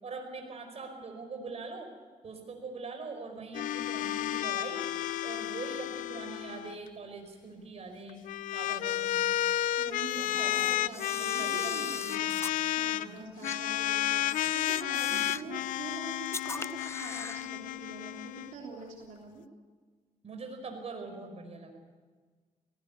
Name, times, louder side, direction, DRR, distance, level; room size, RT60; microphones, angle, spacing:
voice 1, 0.0-1.9 2.2-4.8 5.2-8.2 8.5-9.2 10.1-10.6 11.1-12.4 12.9-13.2 15.1-15.3 20.2-21.8, right 4 dB, 50° right, 5 dB, 5.1 m, -43 dB
sound 1, 3.5-6.8 8.1-13.1 13.4-18.5, left 13 dB, 90° left, 0.5 m, -32 dB
voice 2, 9.8-11.9 12.8-19.4, right 4 dB, 80° right, -1 dB, 3.6 m, -44 dB
Camera, 10.0-12.6 13.4-13.6 14.2-15.5 16.2-17.5, left 3 dB, 20° left, 0.5 m, -41 dB
19.0 x 17.5 x 8.3 m, 1.4 s
cardioid pair, 80°, 13 cm